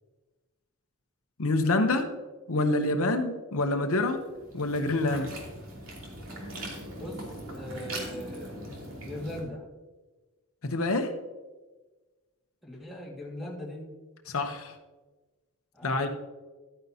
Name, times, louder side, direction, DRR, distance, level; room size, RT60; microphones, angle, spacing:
voice 1, 1.4-2.1 2.5-4.2 4.5-5.3 10.6-11.1 14.3-14.7 15.8-16.1, left 2 dB, 70° left, 6 dB, 0.8 m, -26 dB
sound 1, 3.9-9.4, right 1 dB, 65° right, 2.8 m, -41 dB
voice 2, 7.6-9.7 12.6-13.8 15.7-16.1, left 1 dB, ahead, -3 dB, 1.9 m, -40 dB
12.5 x 9.5 x 2.8 m, 1.2 s
head